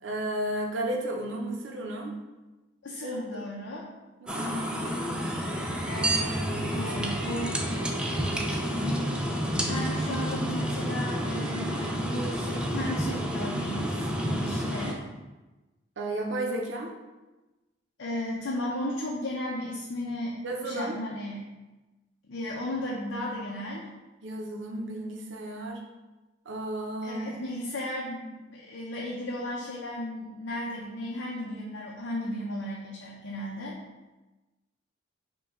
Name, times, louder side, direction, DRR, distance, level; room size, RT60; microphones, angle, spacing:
voice 1, 0.0-2.2 3.0-3.5 4.2-5.0 16.0-16.9 20.4-21.0 24.2-25.8 26.5-27.3, right 1 dB, 85° right, 1 dB, 0.7 m, -33 dB
voice 2, 2.8-3.8 5.8-7.6 8.2-9.0 9.7-15.0 18.0-20.4 20.6-21.5 22.3-23.9 27.0-33.8, left 1 dB, 90° left, -4 dB, 0.6 m, -35 dB
sound 1, 4.3-14.9, equal, 5° right, 0.4 m, -30 dB
5.1 x 2.3 x 3.6 m, 1.1 s
head